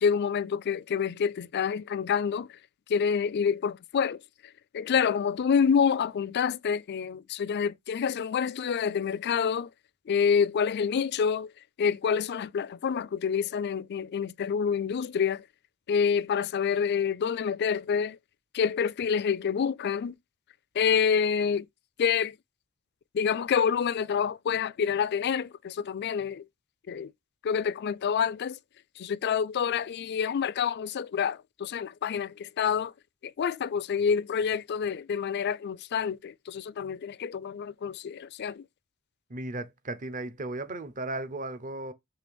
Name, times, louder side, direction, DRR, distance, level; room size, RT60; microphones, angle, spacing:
voice 1, 0.0-2.6 2.9-9.7 10.1-11.5 11.8-15.4 15.9-18.2 18.5-20.1 20.8-21.7 22.0-22.4 23.1-26.5 26.9-27.1 27.4-28.6 29.0-32.9 33.2-38.6, left 7 dB, 50° left, 0.4 m, -27 dB
voice 2, 39.3-41.9, right 2 dB, 40° right, 0.8 m, -35 dB
6.8 x 3.3 x 5.2 m
head